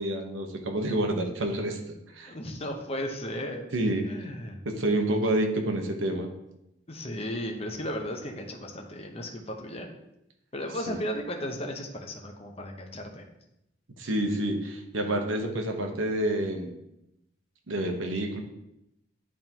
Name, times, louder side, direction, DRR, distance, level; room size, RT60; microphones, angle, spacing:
voice 1, 0.0-1.8 2.1-2.3 3.7-4.0 4.6-6.3 10.9-11.0 14.0-16.7 17.7-18.4, right 1 dB, 85° right, 3 dB, 1.1 m, -28 dB
voice 2, 2.3-3.7 4.1-4.6 6.9-9.9 10.5-13.2, equal, 30° left, 3 dB, 0.9 m, -35 dB
10.5 x 3.7 x 2.9 m, 0.85 s
head